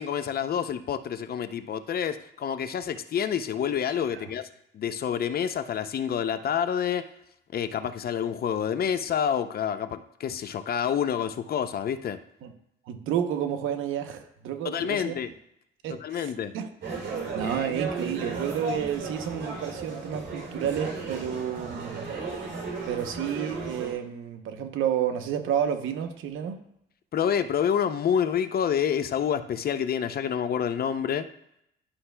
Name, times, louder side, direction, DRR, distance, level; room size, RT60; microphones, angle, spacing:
voice 1, 0.0-4.5 4.7-7.0 7.5-12.2 14.6-15.3 15.9-16.5 17.4-17.7 27.1-31.3, left 8 dB, 50° left, 11 dB, 0.6 m, -28 dB
voice 2, 12.9-15.2 15.8-16.7 17.3-22.1 22.9-26.6, right 9 dB, 85° right, 7 dB, 0.9 m, -30 dB
sound 1, 16.8-23.9, right 3 dB, 65° right, 3.1 m, -35 dB
11.5 x 5.6 x 2.2 m, 0.77 s
cardioid pair, 90°, 20 cm